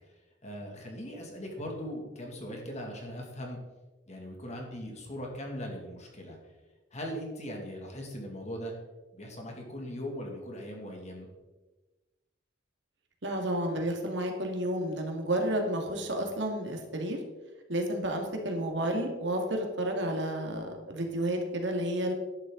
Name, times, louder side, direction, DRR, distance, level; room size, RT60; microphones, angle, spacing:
voice 1, 0.4-3.6 4.1-6.4 6.9-8.7 9.1-11.3, equal, 35° left, 1 dB, 2.4 m, -39 dB
voice 2, 13.2-17.2 17.7-22.1, right 1 dB, 65° right, 2 dB, 2.2 m, -31 dB
11.5 x 11.0 x 4.0 m, 1.2 s
head